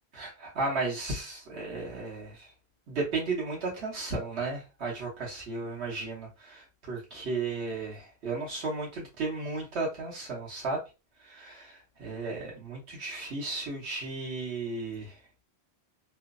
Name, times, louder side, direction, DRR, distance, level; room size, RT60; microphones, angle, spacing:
voice 1, 0.1-2.5 2.9-10.8 11.2-15.1, right 3 dB, 80° right, -4 dB, 1.4 m, -34 dB
3.1 x 2.0 x 2.3 m, 0.28 s
omnidirectional pair, 1.1 m